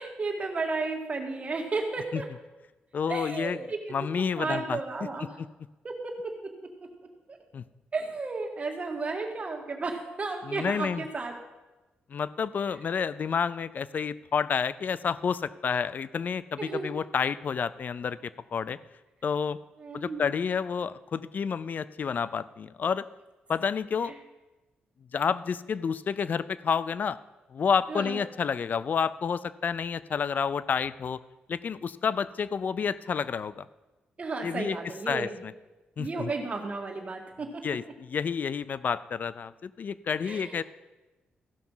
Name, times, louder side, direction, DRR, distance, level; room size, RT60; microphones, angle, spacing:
voice 1, 0.0-2.3 3.1-5.3 5.8-6.3 7.3-7.4 7.9-11.4 16.6-17.0 19.8-20.3 27.9-28.2 34.2-35.4 36.0-37.6 40.2-40.6, right 3 dB, 35° right, 2 dB, 1.9 m, -33 dB
voice 2, 2.9-3.6 3.9-4.8 5.2-5.3 7.5-7.6 10.4-11.1 12.1-18.8 19.2-19.6 19.9-23.0 23.5-24.1 25.1-27.2 27.5-31.2 31.5-33.7 34.4-34.8 35.1-35.3 36.0-36.3 37.6-40.6, left 6 dB, 50° left, 17 dB, 0.4 m, -29 dB
15.0 x 5.8 x 5.5 m, 1.1 s
cardioid pair, 95°, 4 cm